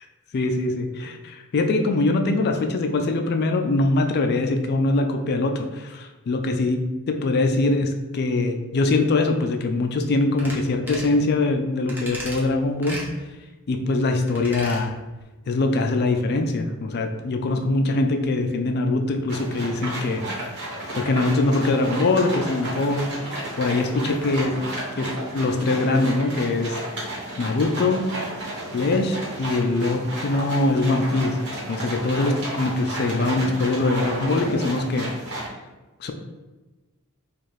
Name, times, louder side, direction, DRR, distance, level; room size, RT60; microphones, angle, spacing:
voice 1, 0.3-13.0 13.7-15.0 15.5-20.3 20.9-24.6 25.0-26.8 27.4-28.1 28.7-31.4 31.7-35.1 36.0-36.1, left 2 dB, 50° left, 5 dB, 0.4 m, -23 dB
sound 1, 10.4-10.6 10.9-11.1 11.9-12.4 12.8-13.1 14.3-14.8 15.2-15.3, right 1 dB, 10° right, 0.8 m, -35 dB
sound 2, 19.3-35.5, right 1 dB, 55° right, 1.2 m, -32 dB
4.3 x 2.4 x 3.1 m, 1.2 s
head